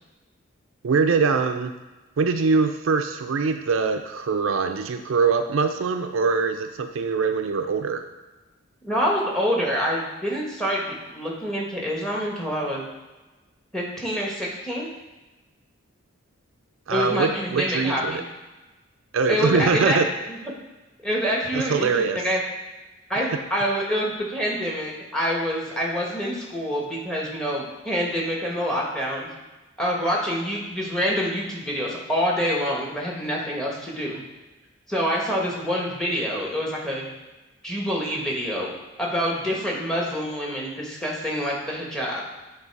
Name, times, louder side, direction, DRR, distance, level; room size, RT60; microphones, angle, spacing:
voice 1, 0.8-1.7 2.2-8.0 16.9-18.2 19.1-20.1 21.5-22.2, right 5 dB, 70° right, 7 dB, 0.4 m, -23 dB
voice 2, 8.8-12.9 13.7-14.9 16.9-18.2 19.3-20.0 20.3-20.4 21.0-22.4 23.1-29.3 29.8-34.2 34.9-37.1 37.6-38.7 39.0-42.2, equal, 5° left, -2 dB, 1.1 m, -26 dB
8.1 x 3.2 x 4.6 m, 1.1 s
head